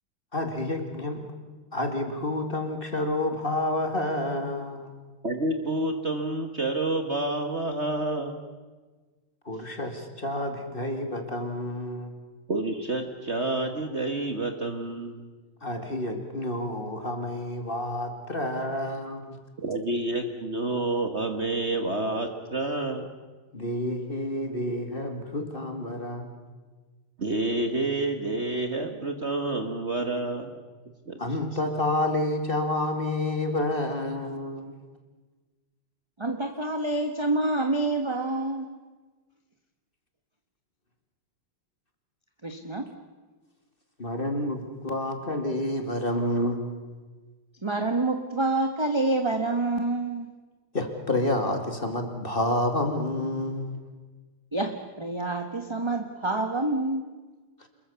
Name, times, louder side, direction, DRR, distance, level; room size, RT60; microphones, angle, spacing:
voice 1, 0.3-1.2 1.7-4.9 9.4-12.1 15.6-19.3 23.5-26.3 31.2-34.7 44.0-46.6 50.7-53.8, left 1 dB, 25° left, 5 dB, 2.5 m, -29 dB
voice 2, 5.2-8.4 12.5-15.2 19.6-23.1 27.2-30.5 31.1-31.3, right 2 dB, 35° right, 6 dB, 1.6 m, -29 dB
voice 3, 36.2-38.6 42.4-42.9 47.6-50.2 54.5-57.0, right 2 dB, 15° right, 6 dB, 1.0 m, -27 dB
27.5 x 21.5 x 7.0 m, 1.3 s
omnidirectional pair, 2.3 m